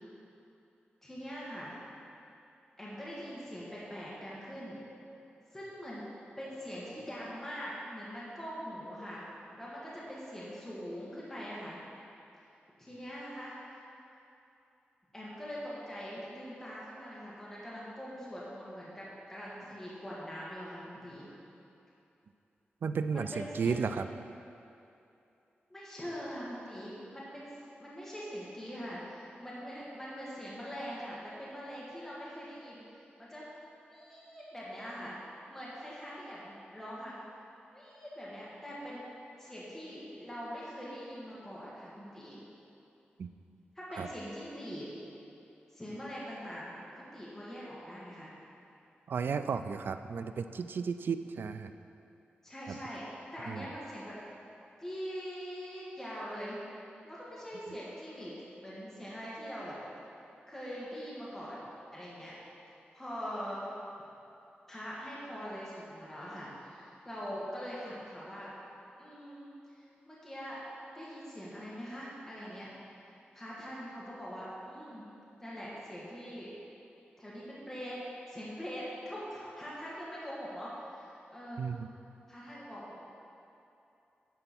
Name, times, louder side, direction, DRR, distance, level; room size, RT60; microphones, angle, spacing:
voice 1, 1.0-1.8 2.8-4.8 5.5-6.0 6.4-9.3 9.5-11.8 12.8-13.5 15.1-21.3 23.1-23.9 25.7-32.8 33.2-33.4 33.9-35.2 35.5-37.2 37.7-39.0 39.4-42.4 43.7-44.9 45.7-48.4 52.4-54.2 54.8-56.6 57.0-59.8 60.5-62.3 62.9-63.6 64.7-68.5 69.0-70.6 70.9-72.7 73.3-75.1 75.4-76.5 77.2-78.0 78.3-81.7 82.3-83.0, equal, 10° left, -8 dB, 1.7 m, -43 dB
voice 2, 22.8-24.1 43.2-43.3 44.0-44.1 49.1-51.7 52.7-52.8 53.5-53.7 81.6-81.9, right 5 dB, 65° right, 10 dB, 0.4 m, -33 dB
10.5 x 4.5 x 6.0 m, 2.8 s
wide cardioid pair, 140°, 4 cm